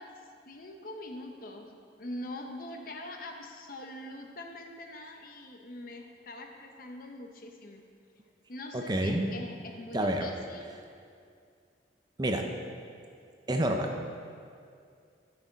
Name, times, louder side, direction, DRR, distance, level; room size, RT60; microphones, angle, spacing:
voice 1, 0.0-7.8 8.5-10.8, left 1 dB, 50° left, 3 dB, 0.8 m, -43 dB
voice 2, 8.7-9.3 9.9-10.4 12.2-12.4 13.5-13.9, right 1 dB, 20° right, 3 dB, 0.6 m, -28 dB
12.5 x 6.2 x 4.0 m, 2.3 s
head